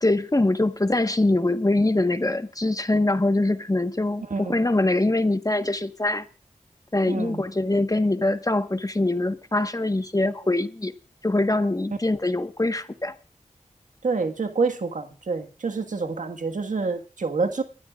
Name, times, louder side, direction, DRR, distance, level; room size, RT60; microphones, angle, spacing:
voice 1, 0.0-6.3 6.9-10.9 11.2-13.1, left 2 dB, 25° left, 1.3 m, -23 dB
voice 2, 4.3-4.6 7.1-7.4 14.0-17.6, right 4 dB, 80° right, 1.6 m, -27 dB
30.0 x 13.0 x 2.4 m
cardioid pair, 45°, 13 cm